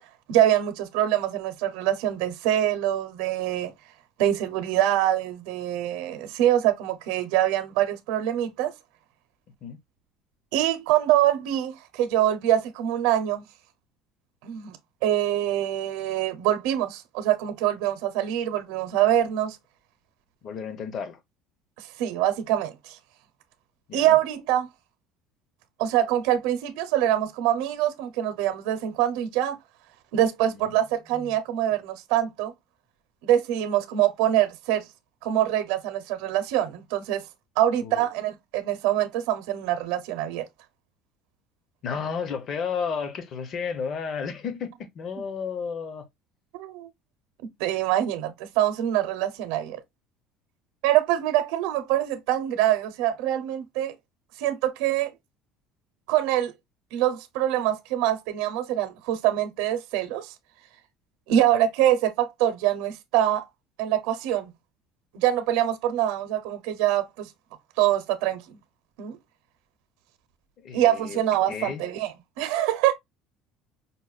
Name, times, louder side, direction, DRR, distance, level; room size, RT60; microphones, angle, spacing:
voice 1, 0.3-3.7 4.2-8.7 10.5-13.4 14.4-14.8 15.0-19.6 21.8-23.0 23.9-24.7 25.8-29.6 30.1-32.5 33.2-34.9 35.2-37.2 37.6-40.4 46.5-46.9 47.6-49.8 50.8-53.9 54.4-55.1 56.1-56.5 56.9-60.3 61.3-63.5 63.8-64.5 65.1-67.3 67.8-68.4 69.0-69.2 70.7-72.9, right 12 dB, 80° right, 0.6 m, -24 dB
voice 2, 20.4-21.2 23.9-24.2 30.5-30.7 31.1-31.4 37.8-38.1 41.8-46.1 61.4-61.5 70.6-71.2 71.5-71.8, left 6 dB, 35° left, 0.7 m, -33 dB
5.3 x 2.2 x 2.3 m
cardioid pair, 160°, 0 cm